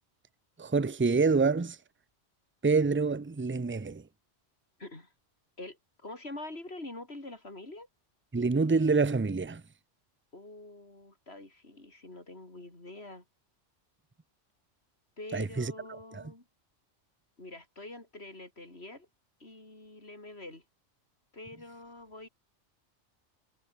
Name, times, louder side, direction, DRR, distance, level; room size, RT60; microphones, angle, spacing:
voice 1, 0.6-1.8 2.6-4.0 8.3-9.6 15.3-15.7 16.1-16.2, right 4 dB, 20° right, 0.3 m, -26 dB
voice 2, 4.8-5.1 5.6-7.9 10.3-13.2 15.2-16.5 17.4-19.1 19.4-20.6 21.3-22.3, left 2 dB, 60° left, 5.2 m, -45 dB
omnidirectional pair, 1.2 m